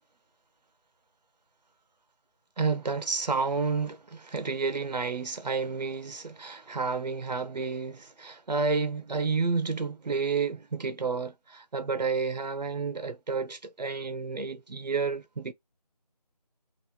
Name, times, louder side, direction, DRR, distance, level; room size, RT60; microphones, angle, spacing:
voice 1, 2.6-15.5, right 4 dB, 90° right, 0.6 m, -30 dB
3.0 x 2.3 x 3.3 m
figure-of-eight pair, 170°, 21 cm